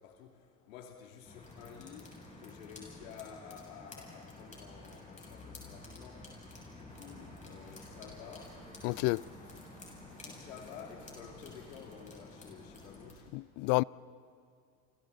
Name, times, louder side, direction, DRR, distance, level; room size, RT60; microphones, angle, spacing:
voice 1, 0.0-6.3 6.7-8.6 9.4-9.8 10.0-13.3, left 7 dB, 80° left, 2.6 m, -51 dB
sound 1, 1.2-13.1, left 2 dB, 20° left, 7.0 m, -51 dB
sound 2, 6.9-12.0, right 4 dB, 70° right, 7.4 m, -58 dB
voice 2, 8.8-9.2 13.3-13.8, left 25 dB, 50° left, 0.4 m, -29 dB
28.5 x 28.5 x 4.0 m
supercardioid pair, 100°, 39 cm